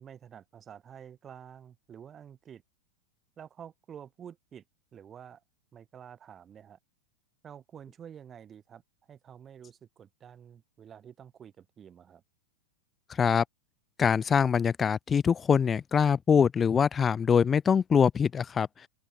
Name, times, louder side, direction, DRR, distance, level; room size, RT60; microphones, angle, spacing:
voice 1, 0.0-2.6 3.4-4.6 4.9-5.4 5.7-6.8 7.4-8.8 9.1-12.2, right 8 dB, 25° right, 7.4 m, -49 dB
voice 2, 14.0-18.7, left 7 dB, 20° left, 0.4 m, -23 dB
open air
figure-of-eight pair, 90°, 0 cm